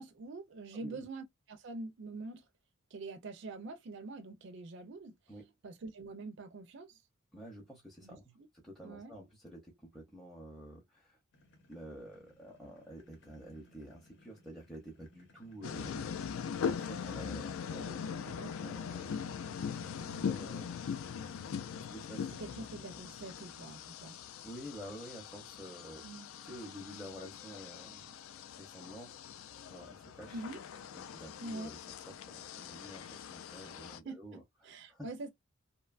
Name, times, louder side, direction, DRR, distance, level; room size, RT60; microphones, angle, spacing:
voice 1, 0.0-2.4 2.9-5.1 5.6-7.0 8.0-8.2 8.8-9.1 18.4-18.7 20.1-20.2 22.4-24.2 26.0-26.3 30.3-30.6 31.4-31.7 34.1-35.3, right 2 dB, 60° right, 0.4 m, -45 dB
voice 2, 0.7-1.0 5.3-5.5 7.3-11.2 11.7-16.2 16.7-19.1 19.4-20.9 21.7-22.4 22.7-22.9 24.4-26.0 26.4-28.1 28.6-29.1 29.7-30.4 30.9-31.8 32.1-35.1, equal, ahead, 0.6 m, -50 dB
sound 1, 11.3-17.0, left 1 dB, 60° left, 0.8 m, -65 dB
sound 2, 15.6-34.0, left 7 dB, 80° left, 0.4 m, -41 dB
2.7 x 2.2 x 2.3 m
head